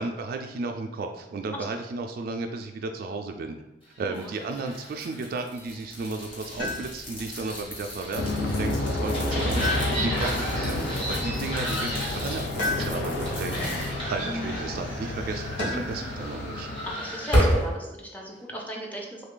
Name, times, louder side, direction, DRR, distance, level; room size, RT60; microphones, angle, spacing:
voice 1, 0.0-3.6 4.0-16.7, right 3 dB, 55° right, 5 dB, 0.3 m, -34 dB
voice 2, 4.0-4.5 15.7-16.0 16.9-19.3, equal, 10° left, -1 dB, 0.6 m, -37 dB
sound 1, 4.1-17.7, equal, 30° left, 1.3 m, -32 dB
sound 2, 6.6-7.2 9.6-10.4 12.6-13.3 15.6-16.1 17.8-18.4, left 2 dB, 85° left, 1.1 m, -33 dB
Aircraft, 8.1-17.2, left 1 dB, 65° left, 0.5 m, -30 dB
3.2 x 2.4 x 3.7 m, 0.93 s
head